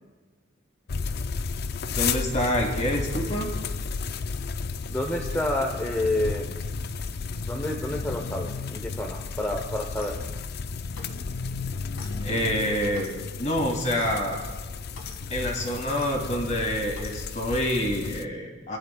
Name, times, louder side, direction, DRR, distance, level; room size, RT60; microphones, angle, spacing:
sound 1, 0.9-18.2, left 4 dB, 50° left, 0.4 m, -33 dB
voice 1, 1.9-3.5 12.2-13.1 13.4-14.4 15.3-18.8, equal, 35° left, 1 dB, 2.2 m, -27 dB
voice 2, 4.9-6.6 7.4-10.2, left 1 dB, 10° left, 0 dB, 0.7 m, -29 dB
Clock, 9.8-10.2 10.9-11.2 11.9-12.1 12.9-13.2 13.9-14.1 14.9-15.2 15.9-16.1 16.9-17.2, left 4 dB, 90° left, 1.6 m, -45 dB
25.0 x 10.5 x 2.3 m, 1.4 s
head